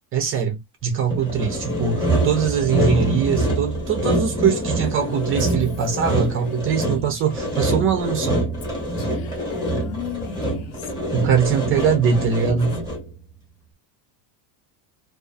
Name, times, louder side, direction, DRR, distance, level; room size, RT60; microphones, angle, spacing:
voice 1, 0.1-8.4 11.1-12.8, right 7 dB, 30° right, 0.4 m, -22 dB
Sawing, 1.1-13.2, right 1 dB, 10° left, 0.9 m, -25 dB
Female speech woman speaking, 4.4-7.7 8.6-10.8, left 6 dB, 75° left, 1.0 m, -44 dB
voice 2, 9.1-10.7 11.6-12.6, left 13 dB, 50° left, 0.5 m, -36 dB
2.4 x 2.4 x 2.3 m
cardioid pair, 155°, 47 cm